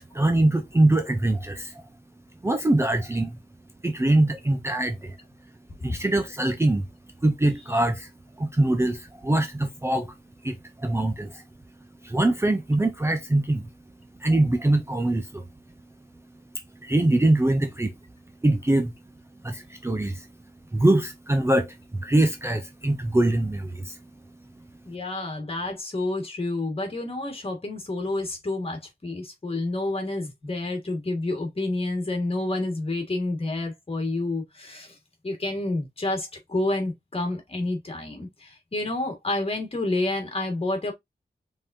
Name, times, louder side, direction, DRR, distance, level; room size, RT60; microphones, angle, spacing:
voice 1, 0.0-1.8 2.4-3.4 3.8-5.2 5.8-6.9 7.2-8.1 8.4-10.1 10.4-11.4 12.0-13.7 14.2-15.5 16.8-17.9 18.4-18.9 19.4-20.3 20.7-24.0 24.6-24.7, right 1 dB, 15° right, 0.6 m, -23 dB
voice 2, 24.9-35.0 35.2-40.9, left 2 dB, 35° left, 1.9 m, -29 dB
5.3 x 3.7 x 2.7 m
wide cardioid pair, 135°, 17 cm